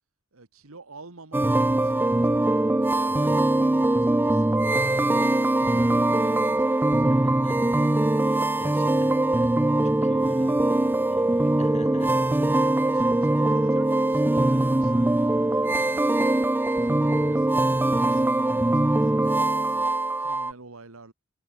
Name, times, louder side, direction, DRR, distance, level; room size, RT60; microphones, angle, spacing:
voice 1, 0.3-2.6 2.9-5.0 5.3-7.6 8.7-8.9 12.6-21.1, right 3 dB, 80° right, 1.7 m, -48 dB
sound 1, 1.3-20.5, right 1 dB, 10° right, 0.4 m, -22 dB
voice 2, 7.1-7.6 8.2-12.1, left 2 dB, 35° left, 2.1 m, -45 dB
head